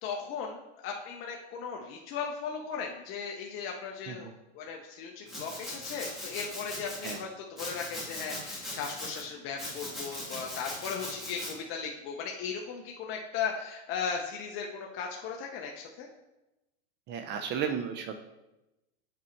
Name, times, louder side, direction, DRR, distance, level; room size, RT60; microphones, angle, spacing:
voice 1, 0.0-4.3 4.5-16.1, left 6 dB, 35° left, 1 dB, 0.7 m, -37 dB
Domestic sounds home sounds, 5.3-7.2 7.6-9.2 9.6-11.5, left 1 dB, ahead, 1.9 m, -40 dB
voice 2, 17.1-18.3, right 7 dB, 30° right, 7 dB, 0.5 m, -34 dB
7.3 x 4.2 x 4.4 m, 0.97 s
supercardioid pair, 130°, 34 cm